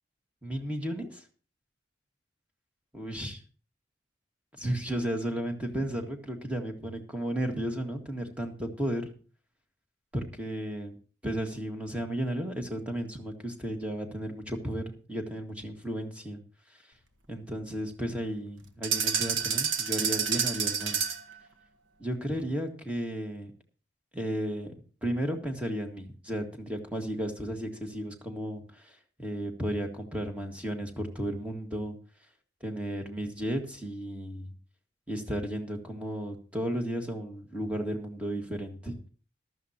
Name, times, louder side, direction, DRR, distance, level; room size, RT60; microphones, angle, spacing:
voice 1, 0.4-1.2 2.9-3.4 4.6-9.1 10.1-11.0 11.2-16.4 16.7-16.8 17.3-21.0 22.0-23.5 24.1-24.8 25.0-32.0 32.6-34.5 35.1-39.0, right 1 dB, 5° right, 3 dB, 1.7 m, -34 dB
sound 1, 18.8-21.3, right 6 dB, 85° right, 1.3 m, -28 dB
14.5 x 12.5 x 2.9 m, 0.37 s
head